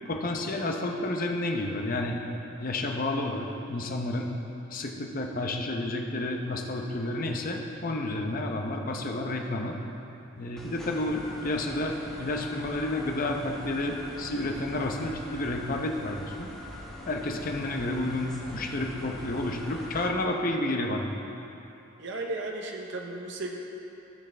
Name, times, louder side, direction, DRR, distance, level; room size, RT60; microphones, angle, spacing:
voice 1, 0.0-2.2 2.6-4.3 4.7-9.8 10.4-16.5 17.1-21.1, left 2 dB, 40° left, 2 dB, 0.7 m, -30 dB
sound 1, 10.6-20.1, left 1 dB, 5° left, 1.2 m, -42 dB
voice 2, 22.0-23.6, right 2 dB, 55° right, 1 dB, 0.7 m, -35 dB
15.5 x 6.4 x 3.4 m, 3.0 s
head